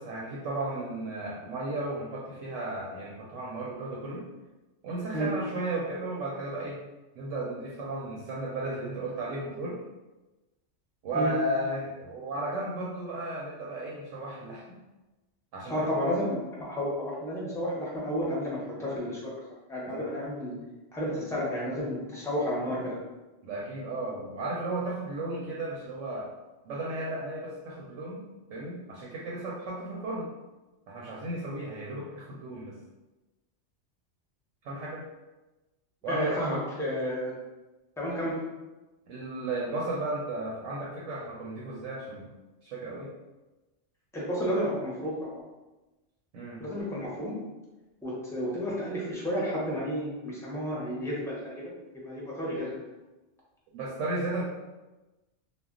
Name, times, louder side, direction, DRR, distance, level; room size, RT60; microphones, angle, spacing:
voice 1, 0.0-4.2 4.8-6.8 7.2-9.8 11.0-14.8 15.5-16.0 19.8-20.0 23.4-26.3 26.6-28.2 28.5-30.3 30.9-32.8 34.6-35.1 36.0-36.4 39.1-42.3 42.6-43.1 46.3-46.6 53.7-54.4, right 2 dB, 90° right, -4 dB, 0.9 m, -34 dB
voice 2, 15.7-19.3 19.7-20.6 20.9-23.0 36.1-37.3 38.0-38.4 44.1-45.4 46.6-47.3 48.0-51.7 52.0-52.7, equal, 5° left, -6 dB, 0.4 m, -31 dB
2.2 x 2.1 x 3.6 m, 1.1 s
omnidirectional pair, 1.3 m